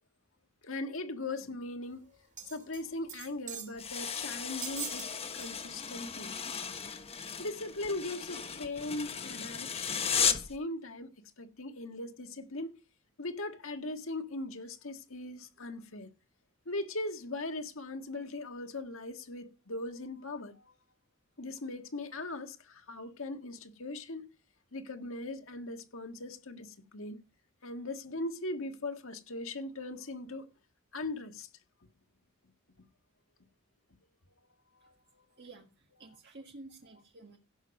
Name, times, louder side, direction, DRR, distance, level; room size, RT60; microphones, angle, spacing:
voice 1, 0.6-2.1 2.4-5.1 5.3-6.3 7.4-11.1 11.4-12.7 13.2-16.1 16.7-20.7 21.4-24.2 24.7-27.2 27.6-30.5 30.9-31.5 34.8-35.0, left 2 dB, 65° left, 1.7 m, -39 dB
sound 1, 2.4-2.8 3.1-3.8 4.6-5.1 5.4-5.6 6.1-6.2, right 9 dB, 35° right, 2.7 m, -42 dB
sound 2, 3.8-10.6, left 7 dB, 30° left, 1.1 m, -35 dB
voice 2, 35.4-37.4, right 2 dB, 50° right, 1.7 m, -52 dB
16.5 x 6.5 x 5.2 m
head